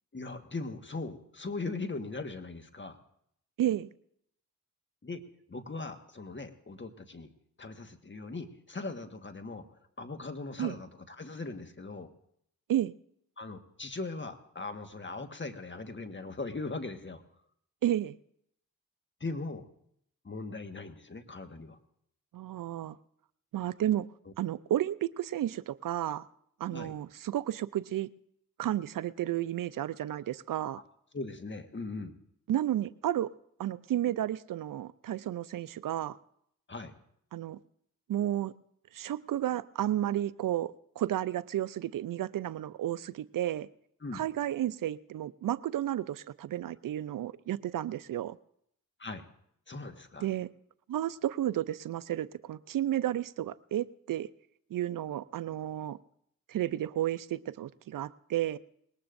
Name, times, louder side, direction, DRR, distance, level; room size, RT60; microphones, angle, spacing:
voice 1, 0.1-3.0 5.0-5.2 5.5-7.3 7.6-9.6 10.0-12.1 13.4-17.2 19.2-19.6 20.2-21.8 26.7-26.9 31.1-32.1 36.7-36.9 44.0-44.2 49.0-49.2 49.7-50.3, left 3 dB, 30° left, 7 dB, 1.6 m, -39 dB
voice 2, 3.6-3.9 10.6-10.8 12.7-12.9 17.8-18.2 22.3-23.0 23.5-24.1 24.4-26.2 26.6-28.1 28.6-30.8 32.5-33.3 33.6-36.2 37.3-37.6 38.1-38.5 38.9-43.7 44.1-48.4 50.2-50.5 50.9-54.3 54.7-56.0 56.5-58.6, right 12 dB, 65° right, 17 dB, 0.5 m, -32 dB
20.5 x 18.0 x 2.6 m, 0.71 s
supercardioid pair, 45°, 35 cm